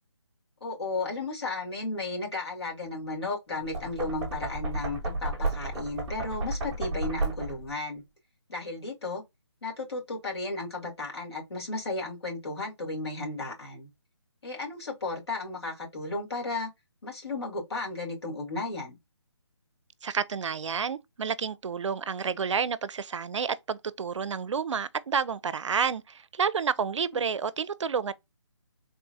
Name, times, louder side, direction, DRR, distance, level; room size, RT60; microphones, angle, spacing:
voice 1, 0.6-8.0 8.5-9.2 9.6-13.9 14.4-16.7 17.0-19.0 27.1-27.2, left 3 dB, 60° left, 2.0 m, -34 dB
Knock, 3.6-7.7, right 2 dB, 5° right, 0.7 m, -32 dB
voice 2, 20.0-28.1, right 6 dB, 90° right, 0.4 m, -30 dB
3.6 x 2.3 x 2.6 m
hypercardioid pair, 175°, 15 cm